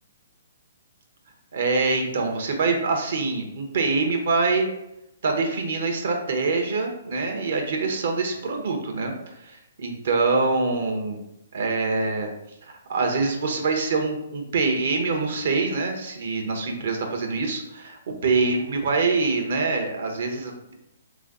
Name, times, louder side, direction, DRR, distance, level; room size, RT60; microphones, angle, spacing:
voice 1, 1.5-4.7 5.2-9.1 9.4-11.2 11.5-12.3 12.9-20.7, right 3 dB, 65° right, 3 dB, 1.0 m, -25 dB
3.9 x 3.1 x 3.8 m, 0.85 s
hypercardioid pair, 140°, 0 cm